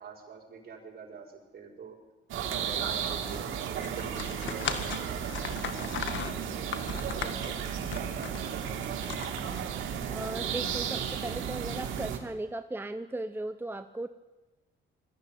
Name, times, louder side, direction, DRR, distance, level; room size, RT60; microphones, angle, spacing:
voice 1, 0.0-2.0 2.4-5.2 5.5-7.6 7.9-8.8, right 5 dB, 50° right, 0 dB, 5.8 m, -45 dB
sound 1, 2.3-12.2, right 8 dB, 85° right, 2.8 m, -34 dB
sound 2, 3.8-9.9, left 8 dB, 70° left, 1.8 m, -38 dB
voice 2, 10.1-14.1, right 2 dB, 10° right, 9 dB, 0.8 m, -37 dB
21.0 x 15.0 x 9.4 m, 1.2 s
cardioid pair, 90°, 20 cm